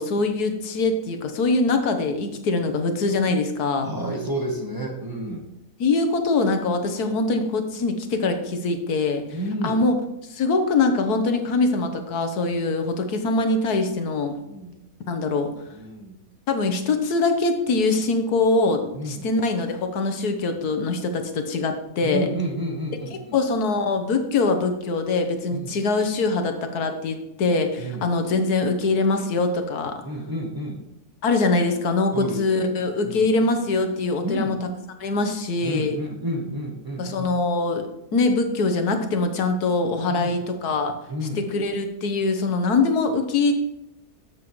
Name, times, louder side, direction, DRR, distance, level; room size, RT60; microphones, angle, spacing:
voice 1, 0.0-3.9 5.8-9.2 9.6-9.9 10.3-14.4 15.1-15.5 16.5-22.3 23.3-29.9 31.2-34.7 35.0-36.0 37.0-37.9 38.1-40.9 41.3-43.5, left 3 dB, 80° left, 6 dB, 1.5 m, -23 dB
voice 2, 3.8-5.4 9.3-9.8 14.5-14.8 15.7-16.2 18.9-19.3 22.0-23.4 25.5-25.8 27.8-28.1 30.0-30.8 32.1-32.8 33.0-33.3 34.2-34.6 35.6-37.3 40.1-40.4 41.1-41.5, right 1 dB, 15° right, 0 dB, 1.2 m, -30 dB
12.5 x 7.4 x 3.1 m, 0.85 s
omnidirectional pair, 1.6 m